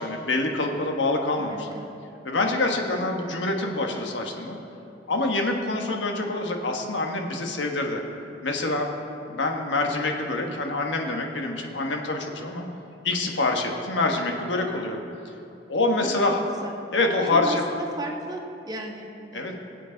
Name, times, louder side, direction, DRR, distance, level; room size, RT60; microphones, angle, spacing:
voice 1, 0.0-1.7 2.2-4.6 5.1-8.0 8.4-8.9 9.3-12.7 13.0-15.0 15.7-16.4 16.9-17.6 19.3-19.5, left 2 dB, 80° left, 2 dB, 1.4 m, -26 dB
voice 2, 1.4-1.9 16.0-16.1 16.6-16.7 17.3-19.5, right 1 dB, 20° right, 1 dB, 1.1 m, -35 dB
21.5 x 8.3 x 3.9 m, 2.7 s
head